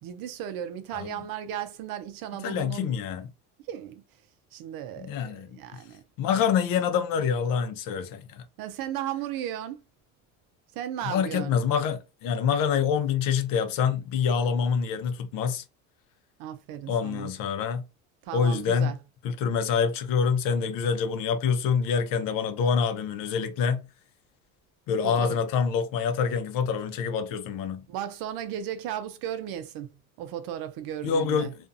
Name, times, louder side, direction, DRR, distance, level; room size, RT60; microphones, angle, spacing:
voice 1, 0.0-3.0 3.7-4.0 4.5-6.0 8.6-9.8 10.7-11.6 16.4-17.3 18.2-19.0 25.0-25.4 27.9-29.9 30.2-31.7, right 10 dB, 65° right, 0.6 m, -35 dB
voice 2, 2.4-3.3 5.0-5.5 6.2-8.4 11.0-15.6 16.9-17.8 18.3-18.9 19.2-23.9 24.9-27.8 31.0-31.5, left 6 dB, 60° left, 0.7 m, -26 dB
2.5 x 2.4 x 2.5 m
supercardioid pair, 95°, 37 cm